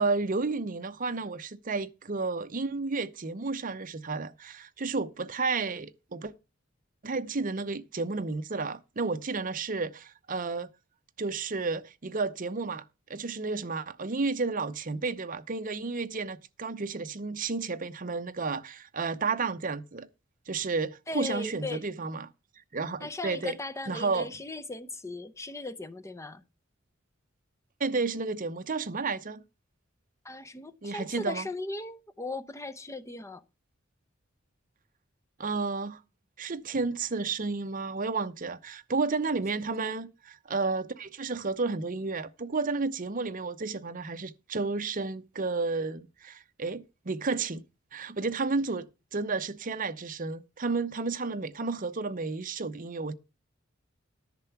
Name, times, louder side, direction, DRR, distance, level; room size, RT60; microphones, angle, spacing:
voice 1, 0.0-6.3 7.0-10.7 11.2-12.8 13.1-20.1 20.5-22.3 22.7-23.6 23.9-24.3 27.8-29.4 30.8-31.5 35.4-36.0 36.4-47.6 47.9-48.9 49.1-53.1, right 4 dB, 40° right, 0.8 m, -32 dB
voice 2, 21.1-21.8 23.0-26.4 30.2-33.4 39.6-39.7, left 2 dB, 15° left, 0.7 m, -38 dB
10.5 x 6.7 x 5.9 m
head